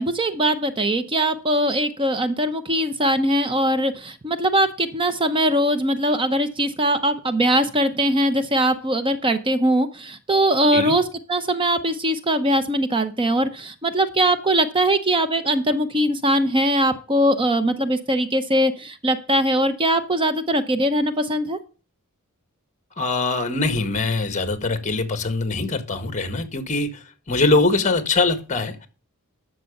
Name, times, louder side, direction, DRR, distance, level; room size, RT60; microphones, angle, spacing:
voice 1, 0.0-11.0 11.3-21.6, right 1 dB, 25° right, 0.8 m, -21 dB
voice 2, 23.0-28.9, left 3 dB, 35° left, 1.7 m, -23 dB
12.0 x 6.8 x 5.4 m
head